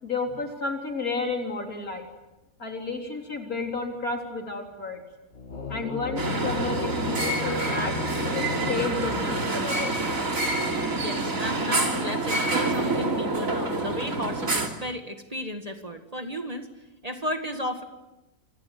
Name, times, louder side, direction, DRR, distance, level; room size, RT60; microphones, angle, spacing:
voice 1, 0.0-2.1 2.6-5.0 5.7-7.9 8.3-10.0, left 3 dB, 70° left, 2 dB, 4.3 m, -32 dB
sound 1, 5.3-10.1, left 3 dB, 50° left, 2.0 m, -34 dB
sound 2, 6.2-14.7, right 2 dB, 60° right, 3.5 m, -27 dB
voice 2, 10.9-16.7 17.0-17.8, equal, 25° right, 5 dB, 2.2 m, -34 dB
27.5 x 26.5 x 7.8 m, 1.0 s
omnidirectional pair, 1.6 m